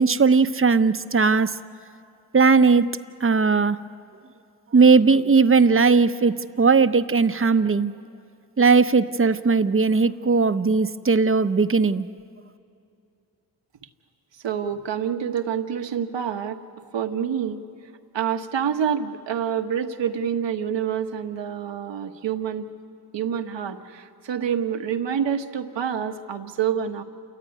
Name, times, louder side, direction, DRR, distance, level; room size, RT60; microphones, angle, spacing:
voice 1, 0.0-1.5 2.3-2.9 3.2-3.8 4.7-7.9 8.6-12.1, right 4 dB, 30° right, 11 dB, 0.9 m, -18 dB
voice 2, 14.4-16.6 16.9-17.6 18.1-22.7 23.1-27.0, right 8 dB, 75° right, 7 dB, 1.4 m, -27 dB
28.5 x 14.5 x 9.4 m, 2.5 s
cardioid pair, 50°, 43 cm